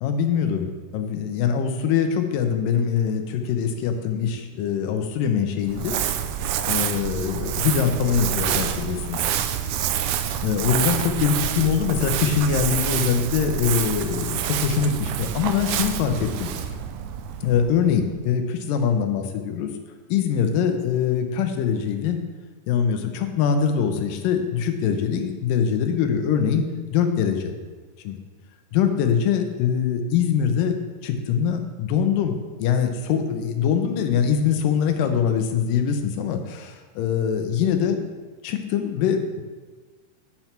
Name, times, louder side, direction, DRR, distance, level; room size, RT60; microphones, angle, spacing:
voice 1, 0.0-6.0 6.7-9.2 10.4-16.5 17.4-19.8 20.1-22.2 22.7-27.5 28.0-28.2 28.7-38.0 38.4-39.4, left 7 dB, 80° left, 6 dB, 2.4 m, -23 dB
Crumpling crinkling, 5.6-18.1, right 9 dB, 80° right, 1.8 m, -27 dB
9.4 x 5.8 x 4.5 m, 1.4 s
omnidirectional pair, 4.0 m